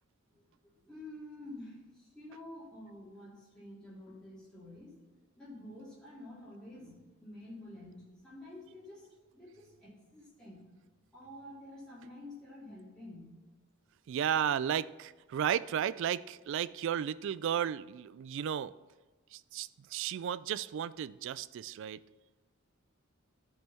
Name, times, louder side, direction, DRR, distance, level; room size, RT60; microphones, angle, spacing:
voice 1, 0.3-8.0 8.2-9.1 9.3-10.6 11.1-13.3, left 1 dB, 5° left, -9 dB, 3.5 m, -49 dB
voice 2, 14.1-18.7 19.3-22.0, right 9 dB, 60° right, 18 dB, 0.3 m, -34 dB
13.5 x 5.5 x 4.4 m, 1.3 s
head